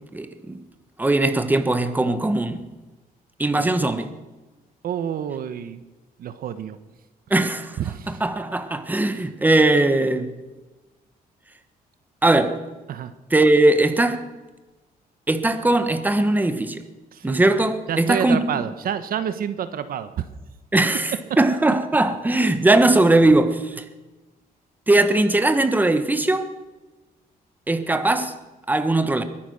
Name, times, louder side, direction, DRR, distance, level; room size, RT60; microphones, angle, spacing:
voice 1, 0.1-0.6 1.0-2.7 3.4-4.1 7.3-7.8 8.1-10.3 12.2-12.6 13.3-14.2 15.3-16.8 17.2-18.6 20.7-23.8 24.9-26.5 27.7-28.3 28.7-29.2, right 2 dB, 10° right, 1.3 m, -19 dB
voice 2, 4.8-5.8 6.2-6.8 7.8-8.2 12.9-13.1 17.1-17.4 17.9-20.3, right 9 dB, 70° right, 1.1 m, -28 dB
22.0 x 10.0 x 6.4 m
cardioid pair, 120°, 16 cm